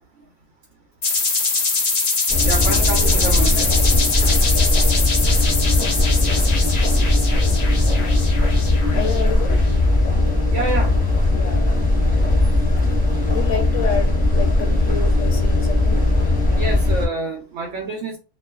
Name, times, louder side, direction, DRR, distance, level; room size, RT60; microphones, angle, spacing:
sound 1, 1.0-9.5, left 4 dB, 85° left, 0.3 m, -23 dB
sound 2, 2.3-17.1, left 2 dB, 5° left, 0.8 m, -18 dB
voice 1, 2.4-3.7 10.5-10.9 16.6-18.2, right 2 dB, 65° right, 2 dB, 0.9 m, -27 dB
voice 2, 8.9-10.0 11.3-11.9 12.3-12.6 13.3-16.0 16.4-16.5, left 6 dB, 70° left, 2 dB, 0.9 m, -30 dB
2.4 x 2.3 x 2.2 m, 0.32 s
omnidirectional pair, 1.5 m